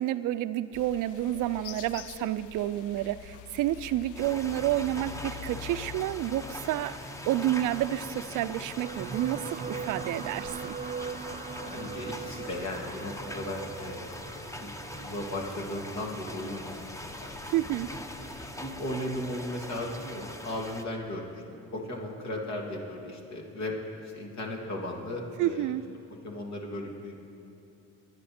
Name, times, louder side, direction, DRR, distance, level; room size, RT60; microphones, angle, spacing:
voice 1, 0.0-7.0 7.3-10.8 17.5-17.9 25.4-25.8, right 13 dB, 85° right, 14 dB, 0.5 m, -29 dB
sound 1, 0.7-18.5, left 10 dB, 80° left, 0.6 m, -49 dB
sound 2, 4.1-20.8, left 1 dB, 10° left, 0.8 m, -41 dB
sound 3, 8.8-17.3 18.1-18.3 18.6-18.7, right 6 dB, 25° right, 0.3 m, -41 dB
voice 2, 11.6-14.7 15.0-17.3 18.6-25.7 26.2-27.3, left 1 dB, 65° left, -1 dB, 2.7 m, -36 dB
23.5 x 9.5 x 4.3 m, 2.8 s
cardioid pair, 90°, 30 cm